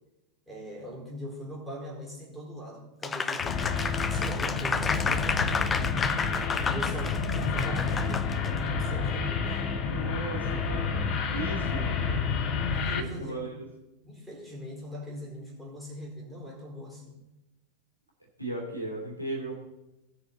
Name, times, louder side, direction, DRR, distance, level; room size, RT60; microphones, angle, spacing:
voice 1, 0.5-6.0 6.7-9.6 12.7-13.5 14.0-17.2, left 1 dB, ahead, -5 dB, 4.4 m, -41 dB
Applause, 3.0-8.6, left 5 dB, 15° left, 0.6 m, -31 dB
sound 1, 3.4-13.0, left 5 dB, 35° left, 1.2 m, -29 dB
voice 2, 9.8-12.3 12.9-13.7 18.4-19.5, right 2 dB, 90° left, -1 dB, 3.0 m, -37 dB
18.5 x 6.4 x 4.2 m, 0.96 s
figure-of-eight pair, 90°, 0 cm